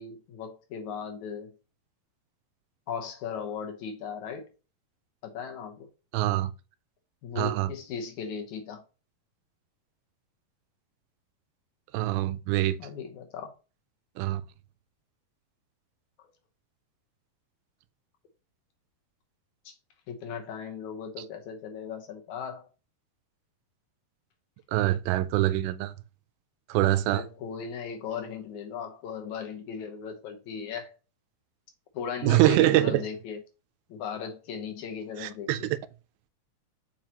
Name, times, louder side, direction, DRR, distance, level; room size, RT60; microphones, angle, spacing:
voice 1, 0.0-1.5 2.9-4.5 5.2-5.9 7.2-8.8 12.8-13.5 19.7-19.8 20.1-22.7 27.1-30.9 31.9-33.4 33.9-35.7, left 7 dB, 70° left, 1.9 m, -37 dB
voice 2, 6.1-6.5 7.4-7.7 11.9-12.8 14.2-14.4 24.7-25.9 26.7-27.2 32.2-33.0 35.2-35.8, right 15 dB, 85° right, 2.3 m, -24 dB
7.6 x 4.8 x 2.9 m
omnidirectional pair, 4.4 m